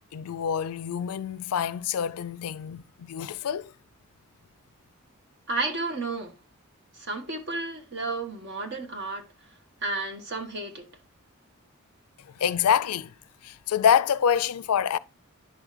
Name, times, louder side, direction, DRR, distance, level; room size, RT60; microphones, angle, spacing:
voice 1, 0.1-3.7 12.4-13.1 13.4-15.0, left 8 dB, 85° left, 0.4 m, -26 dB
voice 2, 5.5-6.4 6.9-9.3 9.8-10.9, right 3 dB, 50° right, 1.2 m, -32 dB
10.5 x 5.0 x 2.4 m
head